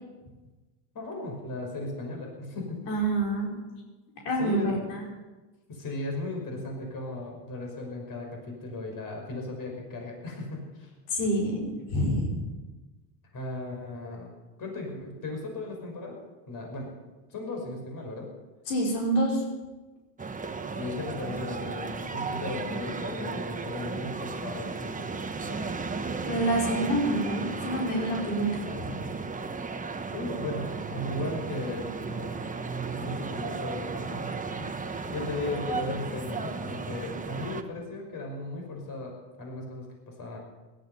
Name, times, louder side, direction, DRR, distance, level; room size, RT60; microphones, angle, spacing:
voice 1, 0.9-2.8 4.4-4.7 5.7-10.9 13.3-14.3 14.6-16.2 16.5-16.9 17.3-18.3 20.8-25.7 30.1-34.3 34.6-39.1 39.4-40.4, left 2 dB, 45° left, 1 dB, 5.7 m, -36 dB
voice 2, 2.9-3.5 4.2-5.1 11.1-12.3 18.7-19.4 26.2-28.9, right 1 dB, 80° left, -1 dB, 5.1 m, -27 dB
sound 1, 20.2-37.6, right 4 dB, 15° right, 1.2 m, -34 dB
17.0 x 13.0 x 5.6 m, 1.2 s
supercardioid pair, 90°, 48 cm